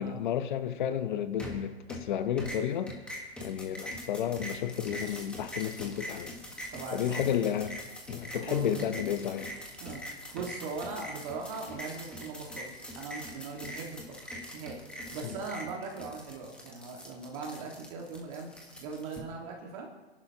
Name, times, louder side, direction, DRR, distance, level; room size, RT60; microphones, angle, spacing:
voice 1, 0.0-2.9 3.4-6.4 6.9-7.7 8.1-9.5 15.2-15.4, left 9 dB, 50° left, 0.8 m, -32 dB
sound 1, 1.4-2.1 2.4-19.2, equal, 5° left, 1.4 m, -43 dB
voice 2, 6.7-7.3 8.4-8.8 9.8-14.8 15.1-18.5 18.8-19.9, right 4 dB, 35° right, 1.8 m, -40 dB
24.5 x 11.0 x 2.9 m
hypercardioid pair, 155°, 31 cm